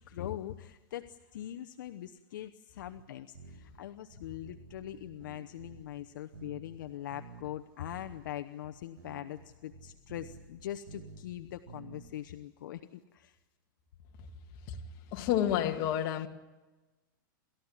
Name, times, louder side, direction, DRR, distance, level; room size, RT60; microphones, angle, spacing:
voice 1, 0.1-13.4, left 12 dB, 65° left, 1.0 m, -42 dB
sound 1, 3.0-3.1 3.3-3.8 4.1-6.1 6.3-6.8 7.1-7.5 7.9-8.1 8.6-8.7 9.0-11.4 11.7-12.2, right 4 dB, 70° right, 7.7 m, -51 dB
voice 2, 15.1-16.3, left 11 dB, 40° left, 2.1 m, -29 dB
29.0 x 14.0 x 9.8 m
hypercardioid pair, 150°, 11 cm